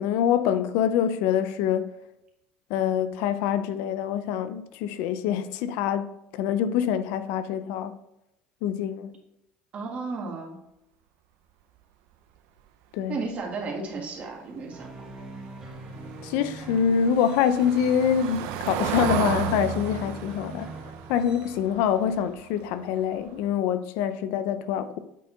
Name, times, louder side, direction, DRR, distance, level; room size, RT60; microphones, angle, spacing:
voice 1, 0.0-1.9 2.7-8.0 8.6-9.1 12.9-13.2 16.2-20.7 21.1-25.0, left 8 dB, 75° left, 0.5 m, -25 dB
voice 2, 9.7-10.6 13.1-14.9, right 3 dB, 35° right, 1.7 m, -33 dB
sound 1, 14.7-21.5, right 2 dB, 15° right, 1.4 m, -43 dB
Car passing by / Engine, 15.7-22.6 23.0-23.2 23.5-23.6, right 10 dB, 75° right, 0.5 m, -33 dB
8.2 x 4.4 x 3.9 m
cardioid pair, 140°, 4 cm